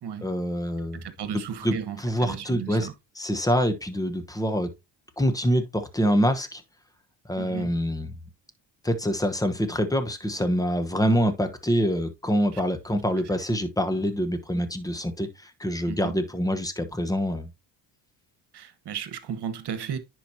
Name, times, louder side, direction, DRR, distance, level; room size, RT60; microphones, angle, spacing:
voice 1, 0.2-1.0 1.6-1.7 2.0-2.9 3.2-4.7 5.2-6.6 7.3-8.1 8.8-17.5, equal, 10° left, 1.0 m, -25 dB
voice 2, 0.9-2.9 7.4-7.8 12.5-12.6 13.2-13.3 15.9-16.2 18.5-20.0, right 8 dB, 60° right, 1.4 m, -35 dB
10.0 x 4.7 x 2.8 m
cardioid pair, 95°, 44 cm